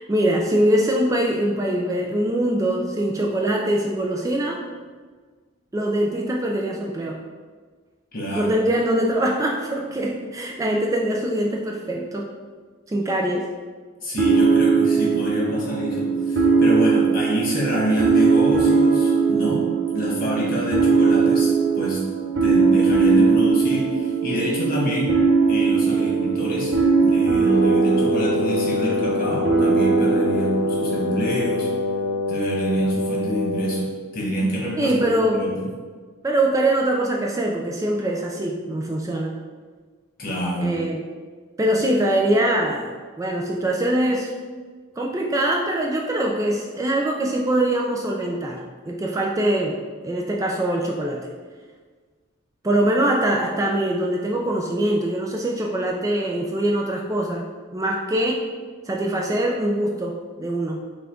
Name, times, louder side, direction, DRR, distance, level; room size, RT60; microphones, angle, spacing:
voice 1, 0.1-4.6 5.7-7.2 8.3-12.3 12.9-13.4 34.8-35.4 36.2-39.4 40.6-41.1 41.6-42.9 43.2-44.3 45.0-49.8 50.0-51.3 52.6-57.4 57.7-58.4 58.9-60.8, right 1 dB, 15° right, 0 dB, 0.3 m, -23 dB
voice 2, 8.1-8.5 14.0-22.0 22.4-25.2 25.5-26.7 27.0-31.7 32.3-33.8 34.1-35.0 35.3-35.7 40.2-40.7, equal, 45° left, -5 dB, 1.4 m, -26 dB
sound 1, 14.2-31.6, right 5 dB, 60° right, 0.8 m, -20 dB
Wind instrument woodwind instrument, 27.5-34.0, left 3 dB, 85° left, 0.3 m, -26 dB
5.8 x 2.3 x 3.6 m, 1.5 s
head